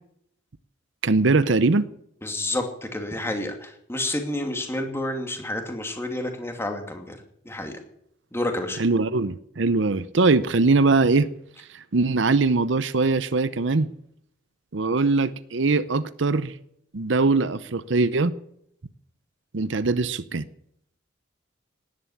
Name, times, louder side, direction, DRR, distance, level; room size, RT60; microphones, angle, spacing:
voice 1, 1.0-1.9 8.8-11.3 11.7-13.9 14.7-16.5 16.9-18.3 19.5-20.4, right 3 dB, 65° right, 0.7 m, -21 dB
voice 2, 2.2-7.2 7.4-7.8 8.3-8.8, left 1 dB, 15° left, 2.5 m, -29 dB
18.0 x 11.0 x 7.2 m
head